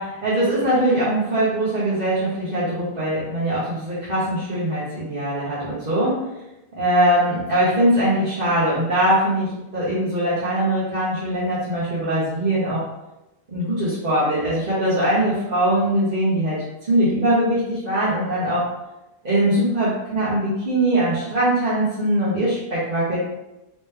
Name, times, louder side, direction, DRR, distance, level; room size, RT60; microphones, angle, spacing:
voice 1, 0.0-6.2 6.8-12.8 13.5-18.7 19.2-23.2, right 1 dB, 50° right, -12 dB, 1.3 m, -21 dB
3.3 x 3.0 x 3.4 m, 0.96 s
omnidirectional pair, 1.2 m